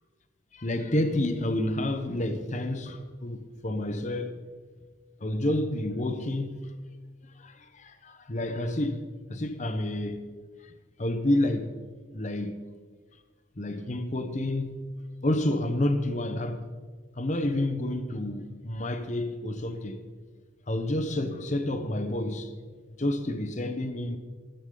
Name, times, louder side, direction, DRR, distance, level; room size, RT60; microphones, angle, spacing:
voice 1, 0.5-4.4 5.2-6.7 7.4-10.3 10.6-10.7 11.0-11.7 12.1-12.6 13.6-14.9 15.2-16.7 17.2-20.0 20.7-22.5 22.9-24.2, left 1 dB, 35° left, 0.9 m, -29 dB
16.0 x 13.0 x 3.9 m
head